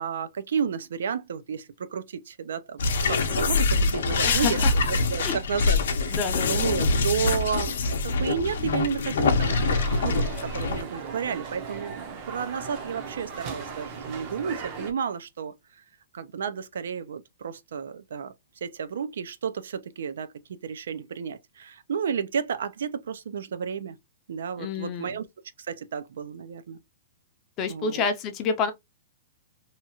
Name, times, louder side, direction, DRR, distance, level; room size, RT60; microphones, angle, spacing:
voice 1, 0.0-15.5 16.1-18.3 18.6-24.0 24.3-25.3 25.7-26.8 27.7-28.0, right 7 dB, 80° right, 0.4 m, -32 dB
sound 1, 2.8-10.8, left 3 dB, 75° left, 0.6 m, -24 dB
voice 2, 4.2-4.7 5.2-5.4 6.1-6.6 24.6-25.2 27.6-28.7, left 5 dB, 25° left, 0.5 m, -28 dB
sound 2, 9.4-14.9, right 5 dB, 30° right, 0.6 m, -38 dB
2.8 x 2.3 x 2.8 m
hypercardioid pair, 165°, 0 cm